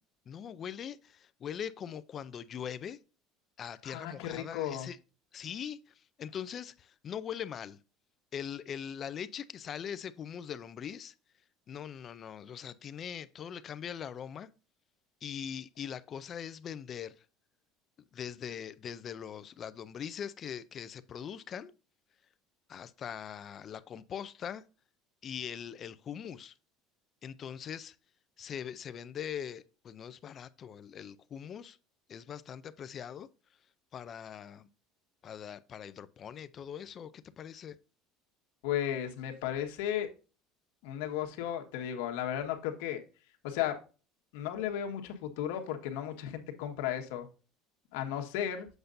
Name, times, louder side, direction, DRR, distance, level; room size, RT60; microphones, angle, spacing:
voice 1, 0.3-3.0 3.6-5.0 5.3-7.8 8.3-11.1 11.7-14.5 15.2-17.3 18.1-21.7 22.7-24.6 25.2-26.5 27.2-28.0 28.4-31.8 32.1-33.3 33.9-34.7 35.2-37.8, left 8 dB, 30° left, 0.4 m, -41 dB
voice 2, 3.8-4.9 38.6-40.1 40.8-43.0 43.4-43.8 44.3-47.3 47.9-48.7, left 10 dB, 80° left, 1.5 m, -34 dB
7.9 x 6.6 x 2.6 m
cardioid pair, 165°, 0 cm